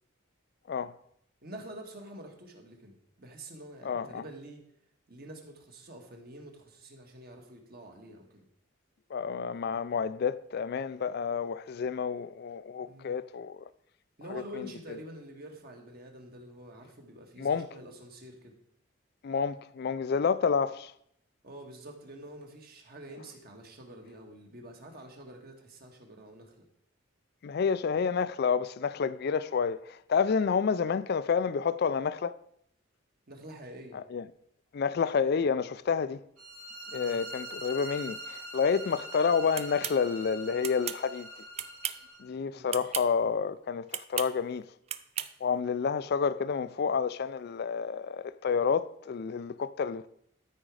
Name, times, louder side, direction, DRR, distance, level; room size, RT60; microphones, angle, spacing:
voice 1, 1.4-4.6 5.1-8.4 12.8-13.1 14.2-18.5 21.4-26.7 33.3-34.0 36.9-37.2 42.6-42.8, right 1 dB, 45° right, 1.6 m, -47 dB
voice 2, 3.8-4.2 9.1-13.7 14.3-14.7 17.4-17.7 19.2-20.9 27.4-32.4 33.9-34.2 34.7-36.2 36.9-41.3 42.2-44.7 45.4-50.1, left 6 dB, 50° left, 0.3 m, -29 dB
sound 1, 36.4-42.2, equal, 85° right, 3.3 m, -43 dB
sound 2, 39.6-40.0 40.6-41.0 41.6-42.1 42.7-43.1 43.9-44.3 44.9-45.3, right 10 dB, 30° right, 0.4 m, -35 dB
12.5 x 5.0 x 4.8 m
head